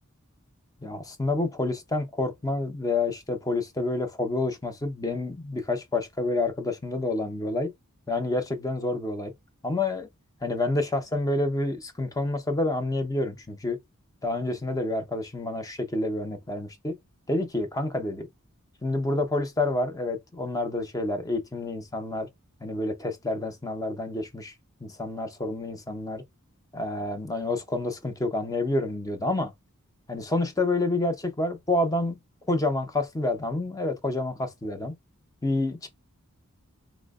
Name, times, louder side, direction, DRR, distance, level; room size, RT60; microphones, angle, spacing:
voice 1, 0.8-7.7 8.1-9.3 9.6-10.1 10.4-13.8 14.2-17.0 17.3-18.3 18.8-22.3 22.6-24.5 24.8-26.2 26.7-29.5 30.1-32.2 32.5-35.0 35.4-35.9, left 2 dB, 15° left, 0.6 m, -28 dB
4.3 x 2.0 x 2.3 m
head